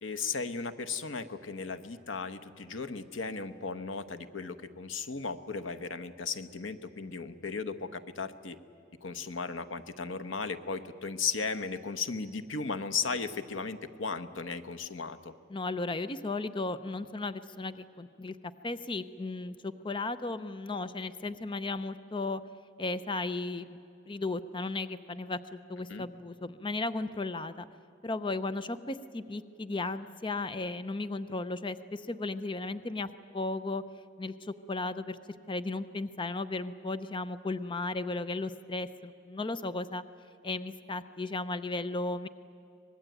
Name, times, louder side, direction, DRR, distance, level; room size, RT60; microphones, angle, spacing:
voice 1, 0.0-8.6 9.0-15.3 25.9-26.1, left 4 dB, 85° left, 10 dB, 1.1 m, -36 dB
voice 2, 15.5-18.4 18.6-22.4 22.8-23.8 24.1-27.7 28.0-33.1 33.3-33.8 34.2-35.2 35.5-40.0 40.4-42.3, left 2 dB, 25° left, 13 dB, 0.6 m, -35 dB
24.5 x 20.0 x 9.1 m, 2.5 s
head